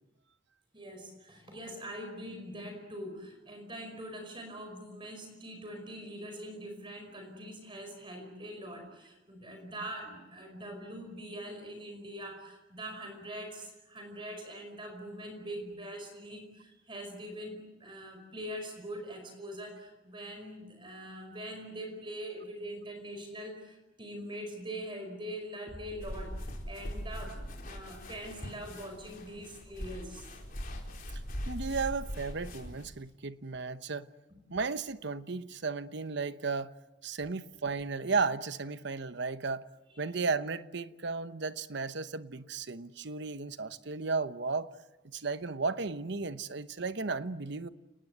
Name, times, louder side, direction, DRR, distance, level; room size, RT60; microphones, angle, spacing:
voice 1, 0.7-30.3, equal, 25° right, 5.1 m, -43 dB
sound 1, 25.7-29.7, equal, ahead, 2.6 m, -53 dB
sound 2, 26.0-32.9, equal, 50° left, 4.6 m, -41 dB
voice 2, 31.5-34.1 34.5-36.7 37.0-39.7 40.0-44.7 45.0-47.7, right 4 dB, 65° right, 1.0 m, -34 dB
30.0 x 19.5 x 8.0 m
head